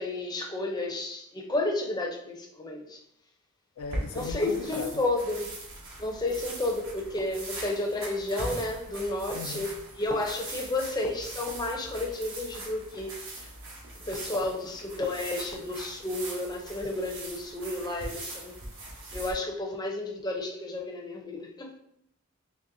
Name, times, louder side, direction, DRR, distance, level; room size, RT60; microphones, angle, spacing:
voice 1, 0.0-3.0 4.1-5.4 6.0-13.5 14.0-18.5 19.1-21.8, left 2 dB, 20° left, 0.6 m, -32 dB
voice 2, 3.8-5.0 9.3-9.7, left 6 dB, 80° left, 0.3 m, -38 dB
sound 1, 3.8-19.3, right 2 dB, 65° right, 1.0 m, -41 dB
4.0 x 3.1 x 2.6 m
head